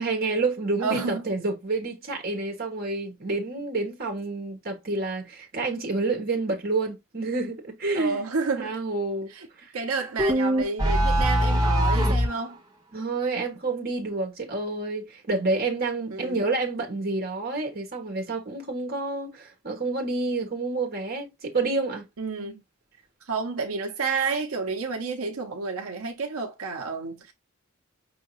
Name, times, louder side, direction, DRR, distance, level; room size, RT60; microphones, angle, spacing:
voice 1, 0.0-8.2 8.6-9.3 9.6-9.7 12.9-22.1, right 3 dB, 45° right, 1.2 m, -29 dB
voice 2, 0.8-1.2 7.9-8.8 9.3-9.5 9.7-12.6 16.1-16.4 22.2-22.6 23.3-27.3, right 4 dB, 80° right, 0.7 m, -30 dB
sound 1, 10.2-12.3, equal, 15° right, 1.1 m, -21 dB
5.7 x 2.7 x 3.0 m
head